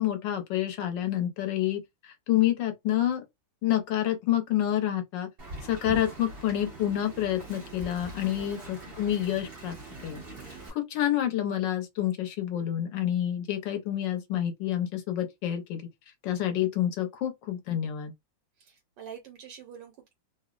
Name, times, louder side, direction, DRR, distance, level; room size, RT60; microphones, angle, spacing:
voice 1, 0.0-3.2 3.6-5.3 5.6-9.7 10.0-10.2 10.7-15.8 16.2-18.1, left 12 dB, 85° left, 1.5 m, -28 dB
Wind, 5.4-10.7, right 2 dB, 40° right, 1.1 m, -43 dB
voice 2, 8.4-8.9 18.6-20.1, right 8 dB, 80° right, 1.3 m, -46 dB
3.5 x 2.1 x 2.4 m
omnidirectional pair, 1.9 m